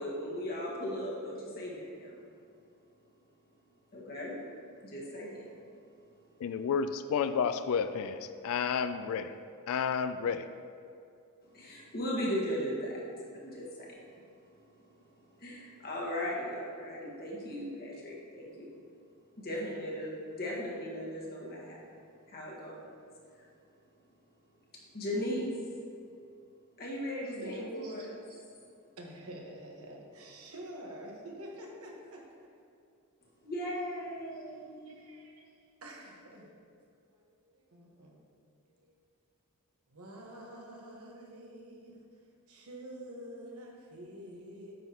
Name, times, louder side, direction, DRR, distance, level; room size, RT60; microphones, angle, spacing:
voice 1, 0.0-2.2 3.9-4.4 4.8-5.5 11.4-13.0 13.3-14.0 15.4-18.8 19.4-22.0 22.3-22.9 23.4-23.5 24.9-25.5 26.8-28.2 33.4-34.9, equal, 45° left, -4 dB, 1.5 m, -37 dB
voice 2, 6.4-9.4 9.7-10.5, left 6 dB, 70° left, 10 dB, 0.3 m, -31 dB
voice 3, 27.3-28.5 29.0-32.5 34.8-36.5 37.0-38.2 38.7-38.9 39.9-44.7, right 1 dB, 75° right, -1 dB, 1.2 m, -48 dB
9.1 x 5.8 x 2.9 m, 2.5 s
head